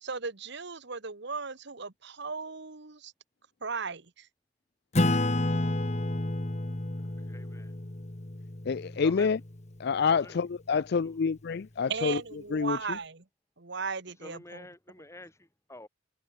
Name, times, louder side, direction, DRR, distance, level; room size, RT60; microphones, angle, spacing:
voice 1, 0.0-3.1 3.6-4.3 11.9-13.2 13.6-14.7, right 5 dB, 55° right, 1.4 m, -36 dB
Acoustic guitar / Strum, 4.9-9.9, left 1 dB, 35° left, 1.4 m, -30 dB
voice 2, 7.2-7.7 9.0-9.4 10.1-10.4 10.7-11.2 14.2-15.9, left 1 dB, 15° left, 3.1 m, -48 dB
voice 3, 8.7-9.4 9.8-12.2 12.5-12.8, left 5 dB, 50° left, 0.4 m, -27 dB
head